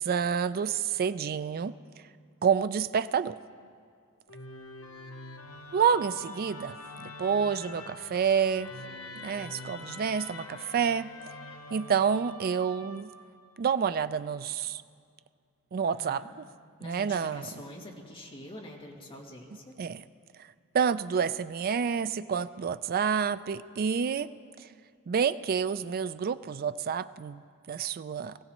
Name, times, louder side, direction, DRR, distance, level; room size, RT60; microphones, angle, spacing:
voice 1, 0.0-1.7 2.4-3.4 5.7-6.8 7.0-8.7 9.2-11.1 11.7-13.1 13.6-14.8 15.7-16.4 16.8-17.6 19.8-20.0 20.7-24.3 25.1-28.4, right 7 dB, 45° right, 14 dB, 0.3 m, -28 dB
Musical instrument, 4.3-13.5, left 2 dB, 75° left, 0.8 m, -45 dB
voice 2, 15.8-16.3 16.8-19.7, left 1 dB, 25° left, -2 dB, 2.0 m, -45 dB
23.0 x 16.0 x 3.0 m, 2.1 s
head